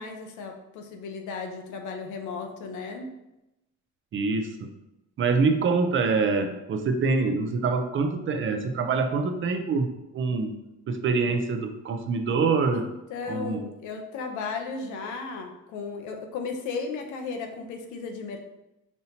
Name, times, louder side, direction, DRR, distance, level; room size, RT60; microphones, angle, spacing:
voice 1, 0.0-3.1 12.7-18.4, left 4 dB, 85° left, 4 dB, 0.7 m, -35 dB
voice 2, 4.1-4.7 5.2-10.6 10.9-12.9 13.3-13.6, right 4 dB, 45° right, 7 dB, 0.5 m, -25 dB
5.4 x 2.8 x 2.7 m, 0.92 s
cardioid pair, 110°, 29 cm